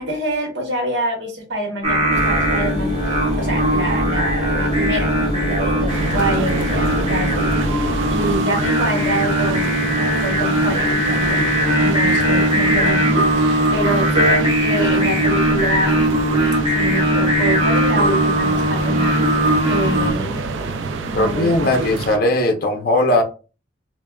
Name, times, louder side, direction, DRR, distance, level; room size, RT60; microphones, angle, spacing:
voice 1, 0.0-16.1 16.6-19.3 19.7-21.9, right 1 dB, 70° right, 2 dB, 0.9 m, -26 dB
Singing, 1.8-20.1, equal, 30° right, 1.0 m, -19 dB
sound 1, 2.1-8.4, equal, 5° right, 1.1 m, -26 dB
sound 2, 5.9-22.2, right 4 dB, 85° right, 0.3 m, -28 dB
voice 2, 21.1-23.2, left 1 dB, 50° left, 4 dB, 0.5 m, -18 dB
3.3 x 2.1 x 2.2 m, 0.34 s
head